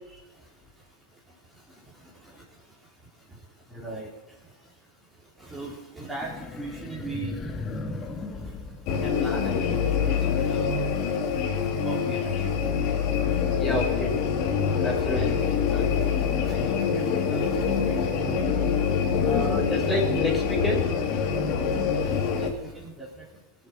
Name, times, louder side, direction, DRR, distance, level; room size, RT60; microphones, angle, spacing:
voice 1, 3.7-4.1 5.4-7.3 8.4-8.5 9.0-10.8 11.8-12.5 15.1-17.9 19.2-19.3 22.0-23.2, right 2 dB, 10° right, -5 dB, 4.5 m, -39 dB
sound 1, 6.2-9.7, left 2 dB, 25° left, 1.8 m, -36 dB
sound 2, 8.9-22.5, left 6 dB, 55° left, 2.8 m, -25 dB
voice 2, 13.5-14.1 14.8-15.4 19.2-20.8, left 1 dB, 10° left, -1 dB, 6.3 m, -28 dB
21.0 x 7.9 x 6.4 m, 1.1 s
hypercardioid pair, 105°, 0 cm